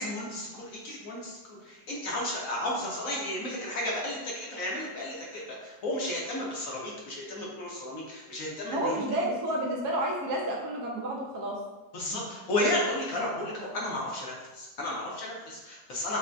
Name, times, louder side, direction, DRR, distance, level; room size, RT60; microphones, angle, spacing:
voice 1, 0.0-9.0 11.9-16.2, left 1 dB, 65° left, -4 dB, 1.0 m, -33 dB
voice 2, 8.7-11.5, right 1 dB, 75° right, -2 dB, 1.2 m, -30 dB
5.4 x 2.1 x 2.5 m, 1.1 s
omnidirectional pair, 1.8 m